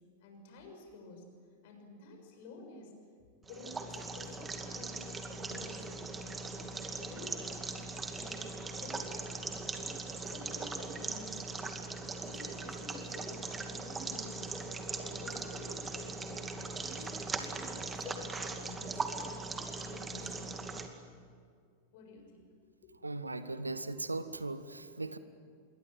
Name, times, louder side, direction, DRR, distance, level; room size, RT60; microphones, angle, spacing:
voice 1, 0.2-1.3 1.6-2.9 3.4-7.9 8.1-9.5 9.8-11.7 12.1-14.6 14.9-19.3 19.7-20.6 21.9-22.5 22.8-22.9, left 2 dB, 50° left, 4 dB, 6.9 m, -51 dB
sound 1, 3.4-20.9, right 3 dB, 15° right, 2.4 m, -40 dB
voice 2, 23.0-25.2, right 2 dB, 80° right, 12 dB, 1.3 m, -38 dB
27.0 x 22.0 x 9.4 m, 2.1 s
figure-of-eight pair, 90°, 0 cm